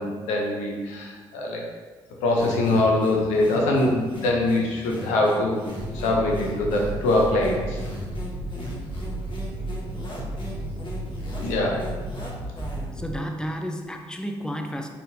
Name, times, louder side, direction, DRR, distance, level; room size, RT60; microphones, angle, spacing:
voice 1, 0.0-1.6 2.2-5.6 5.9-7.8 11.4-11.8, left 2 dB, 85° left, 0 dB, 0.7 m, -23 dB
sound 1, 2.4-13.0, left 1 dB, 45° left, 1.2 m, -38 dB
sound 2, 5.8-13.2, right 1 dB, 10° right, 1.3 m, -33 dB
voice 2, 12.9-14.9, equal, 5° left, 4 dB, 0.6 m, -31 dB
4.1 x 3.8 x 2.7 m, 1.4 s
hypercardioid pair, 50°, 12 cm